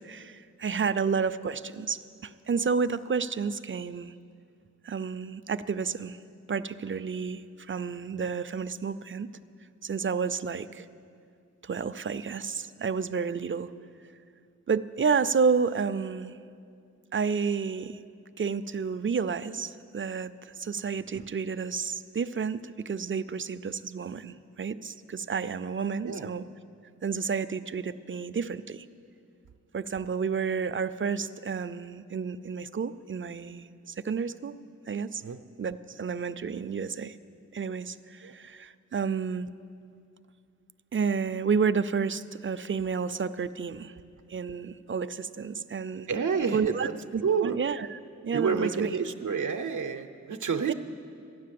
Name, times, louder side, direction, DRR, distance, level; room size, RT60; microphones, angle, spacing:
voice 1, 0.0-4.1 4.8-6.2 6.5-9.3 9.8-10.9 11.6-13.7 14.7-16.4 17.1-18.0 18.4-26.4 27.0-28.9 29.7-34.6 34.9-35.2 35.6-37.2 37.5-39.5 40.9-43.9 44.3-46.1 46.5-48.9 50.7-50.8, right 5 dB, 40° right, 13 dB, 0.5 m, -30 dB
voice 2, 46.1-46.9 47.2-47.6 48.3-50.7, right 6 dB, 80° right, 6 dB, 0.6 m, -29 dB
14.5 x 9.7 x 7.6 m, 2.4 s
wide cardioid pair, 65°, 30 cm